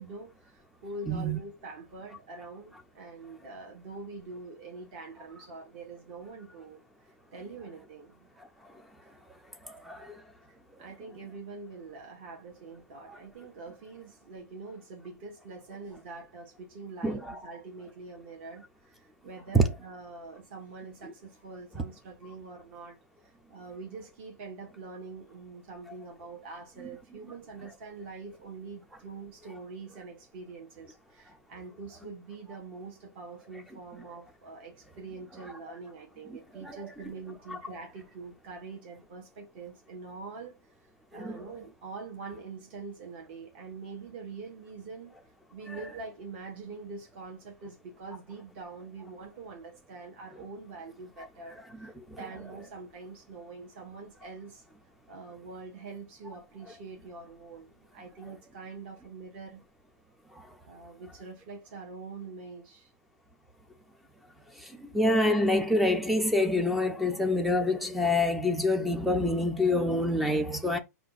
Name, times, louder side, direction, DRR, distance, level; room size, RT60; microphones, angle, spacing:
voice 1, 0.0-8.3 8.7-9.1 9.9-10.3 10.8-40.8 41.1-45.2 45.5-54.6 55.1-59.6 60.7-62.9 64.6-64.7, right 4 dB, 40° right, 1.1 m, -44 dB
voice 2, 1.1-1.4 9.6-10.2 13.1-13.2 17.0-17.4 19.5-19.6 21.0-21.1 36.3-36.8 37.5-37.6 41.1-41.4 45.7-45.8 51.8-52.2 60.3-60.5 64.5-70.8, left 1 dB, ahead, 0.3 m, -27 dB
5.2 x 2.4 x 3.9 m
hypercardioid pair, 170°, 9 cm